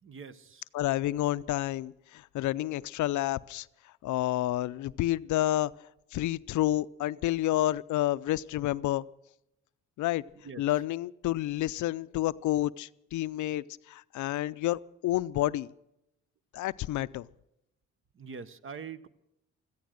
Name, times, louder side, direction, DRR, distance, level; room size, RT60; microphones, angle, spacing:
voice 1, 0.0-0.6 10.4-10.6 18.1-19.1, right 5 dB, 45° right, 14 dB, 1.0 m, -43 dB
voice 2, 0.7-3.7 4.0-5.7 6.1-9.0 10.0-10.2 10.6-15.7 16.5-17.3, left 14 dB, 75° left, 17 dB, 0.5 m, -29 dB
15.5 x 14.5 x 6.4 m, 0.84 s
cardioid pair, 90°, 30 cm